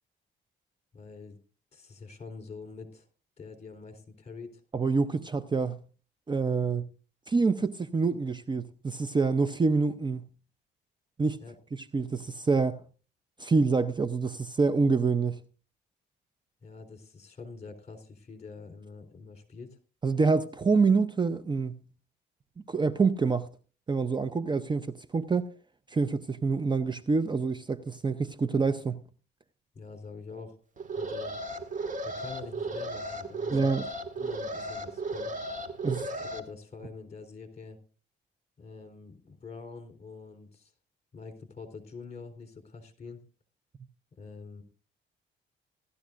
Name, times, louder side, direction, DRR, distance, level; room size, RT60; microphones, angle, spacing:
voice 1, 0.9-1.4 1.7-3.1 3.4-4.6 11.4-11.5 16.6-19.8 29.8-30.6 31.0-31.3 32.0-33.8 34.2-35.3 36.0-37.8 38.6-40.7 41.1-43.2 44.2-44.6, left 4 dB, 35° left, 3.6 m, -45 dB
voice 2, 4.7-5.8 6.3-6.9 7.3-10.3 11.2-11.4 11.7-12.8 13.4-15.4 20.0-21.8 22.7-23.5 23.9-25.5 25.9-29.0 33.5-33.9 35.8-36.1, right 4 dB, 25° right, 0.6 m, -26 dB
Alarm, 30.8-36.4, right 2 dB, 40° right, 1.8 m, -35 dB
17.0 x 12.5 x 2.5 m
cardioid pair, 90°, 20 cm